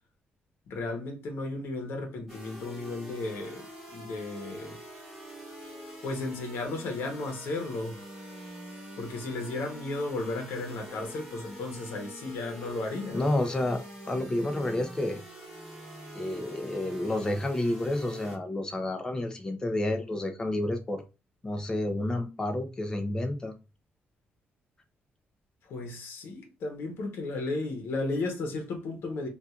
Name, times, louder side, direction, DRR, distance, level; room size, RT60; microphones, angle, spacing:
voice 1, 0.7-4.8 6.0-8.1 9.0-13.3 25.6-29.3, left 2 dB, 80° left, 0.9 m, -34 dB
sound 1, 2.3-18.4, equal, ahead, 1.5 m, -45 dB
voice 2, 13.1-15.2 16.1-21.0 21.4-23.6, left 1 dB, 20° left, 0.6 m, -30 dB
4.2 x 2.4 x 2.4 m
cardioid pair, 130°, 4 cm